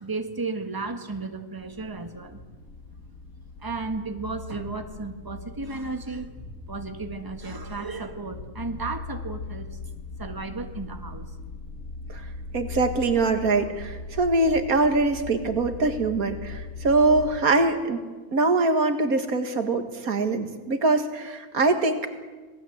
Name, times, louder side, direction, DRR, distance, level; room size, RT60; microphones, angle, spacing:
voice 1, 0.0-2.4 3.6-6.3 6.7-9.8 10.2-11.3, right 3 dB, 15° right, 6 dB, 1.5 m, -34 dB
sound 1, 1.6-17.4, left 3 dB, 70° left, 2.5 m, -40 dB
voice 2, 12.5-18.0 18.3-22.1, right 3 dB, 90° right, 7 dB, 2.3 m, -23 dB
26.5 x 19.0 x 8.0 m, 1.3 s
omnidirectional pair, 1.5 m